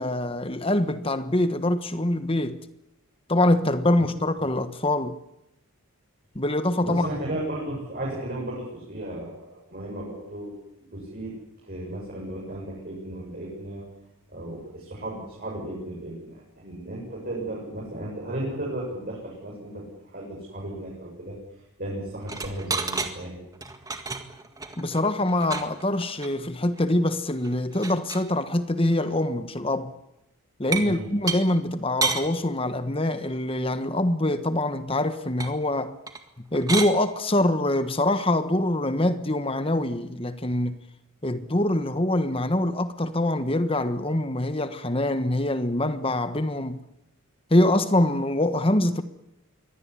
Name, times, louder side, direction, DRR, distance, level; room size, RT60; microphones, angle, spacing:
voice 1, 0.0-2.6 3.3-5.2 6.3-7.1 24.8-29.9 30.6-36.0 36.5-40.8 41.2-46.8 47.5-49.0, left 1 dB, 25° left, 1.3 m, -24 dB
voice 2, 6.8-10.5 10.9-11.3 11.6-13.8 14.3-21.4 21.8-23.5 30.8-31.1, right 1 dB, 40° right, 7.5 m, -35 dB
sound 1, 22.2-23.1 23.5-26.3 26.7-26.8 27.1-27.2 27.4-28.3 28.9-29.1 30.7-30.9 31.3-31.4 32.0-32.3 35.4-35.5 36.1-36.3 36.5-36.9 38.1-38.3, right 4 dB, 15° right, 1.8 m, -31 dB
23.5 x 18.0 x 9.9 m
head